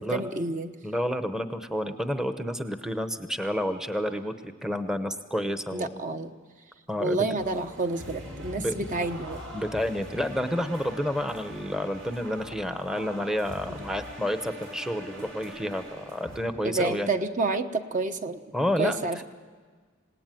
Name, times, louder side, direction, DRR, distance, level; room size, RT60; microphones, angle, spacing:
voice 1, 0.0-0.7 5.7-6.3 7.0-9.4 16.6-18.4 18.8-19.2, right 3 dB, 40° right, 7 dB, 1.1 m, -29 dB
voice 2, 0.8-6.0 6.9-7.2 8.6-8.9 9.5-17.1 18.5-19.0, equal, 5° right, 9 dB, 0.8 m, -30 dB
sound 1, 7.4-16.4, equal, 75° right, 6.4 m, -42 dB
27.5 x 18.0 x 9.2 m, 1.5 s
head